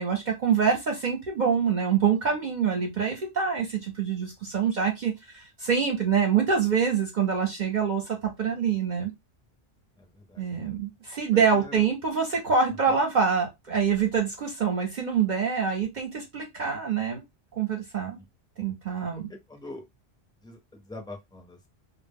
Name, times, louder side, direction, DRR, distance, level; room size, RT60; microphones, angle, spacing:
voice 1, 0.0-9.1 10.4-17.2 17.6-18.2 18.6-19.3, right 6 dB, 55° right, 0.6 m, -25 dB
voice 2, 10.0-10.5 11.3-11.8 12.9-13.0 18.2-18.3 19.3-19.8 20.4-21.7, left 2 dB, 5° left, 0.3 m, -44 dB
2.0 x 2.0 x 3.4 m
omnidirectional pair, 1.1 m